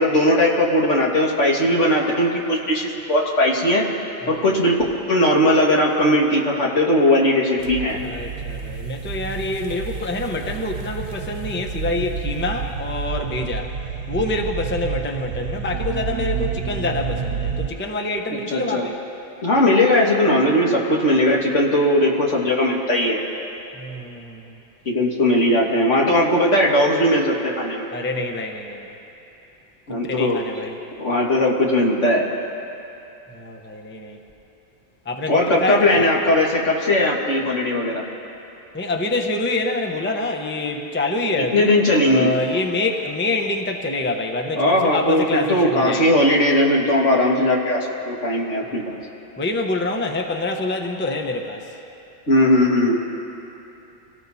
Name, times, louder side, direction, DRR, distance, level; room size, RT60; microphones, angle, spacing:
voice 1, 0.0-3.8 4.3-4.8 5.1-8.0 18.3-18.9 19.4-23.2 24.9-27.9 29.9-30.4 31.0-32.3 35.3-38.0 41.4-42.3 44.6-47.8 48.1-49.0 52.3-53.0, left 1 dB, 65° left, -2 dB, 2.2 m, -18 dB
sound 1, 7.6-17.7, right 6 dB, 90° right, 1.1 m, -29 dB
voice 2, 8.0-13.7 14.1-18.9 23.8-24.6 27.9-28.9 30.0-30.8 33.3-34.2 35.1-36.1 38.7-41.7 42.0-46.2 48.7-48.8 49.4-51.7, left 2 dB, 10° left, 3 dB, 0.7 m, -26 dB
26.0 x 17.5 x 2.8 m, 2.9 s
omnidirectional pair, 1.3 m